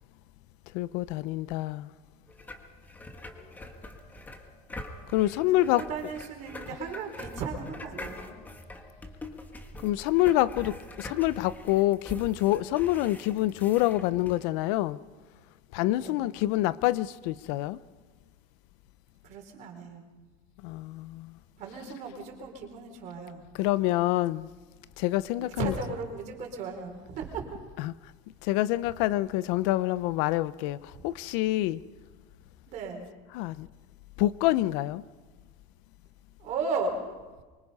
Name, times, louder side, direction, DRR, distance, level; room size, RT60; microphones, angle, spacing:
voice 1, 0.7-1.9 5.1-5.8 9.8-15.0 15.7-17.8 20.6-21.3 23.6-24.5 25.0-25.7 27.8-27.9 28.4-31.8 33.3-33.7 34.2-35.0, left 16 dB, 60° left, 0.7 m, -26 dB
sound 1, 2.3-14.4, left 1 dB, 10° left, 1.6 m, -44 dB
voice 2, 5.5-8.3 16.0-16.2 19.2-20.0 21.6-23.4 25.4-27.6 32.7-33.1 36.4-37.0, right 4 dB, 45° right, 4.2 m, -36 dB
24.5 x 23.0 x 5.5 m
cardioid pair, 170°, 18 cm